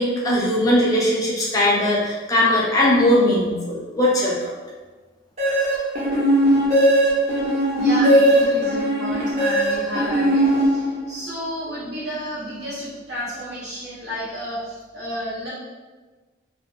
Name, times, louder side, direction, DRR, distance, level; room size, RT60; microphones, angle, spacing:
voice 1, 0.0-4.5, left 1 dB, 20° left, -5 dB, 0.3 m, -19 dB
sound 1, 5.4-11.2, equal, 35° right, 0.7 m, -19 dB
voice 2, 7.7-15.5, equal, 60° right, -10 dB, 1.2 m, -31 dB
2.5 x 2.0 x 2.7 m, 1.3 s
head